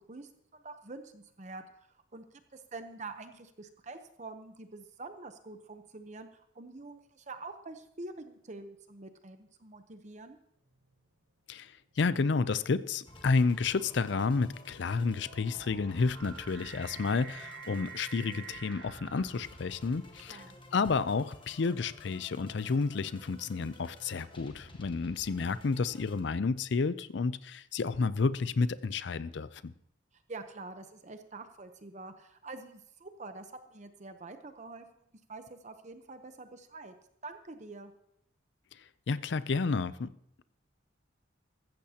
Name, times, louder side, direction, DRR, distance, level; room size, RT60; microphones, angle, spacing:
voice 1, 0.1-10.4 20.3-20.6 30.1-34.9 35.3-36.9 37.2-37.9, right 3 dB, 35° right, 0.8 m, -46 dB
sound 1, 10.7-11.1 11.9-20.1, right 6 dB, 75° right, 1.2 m, -50 dB
voice 2, 11.5-20.4 20.7-29.7 39.1-40.1, left 4 dB, 60° left, 0.5 m, -31 dB
sound 2, 13.1-26.2, left 1 dB, 25° left, 1.3 m, -53 dB
15.0 x 14.0 x 2.9 m
head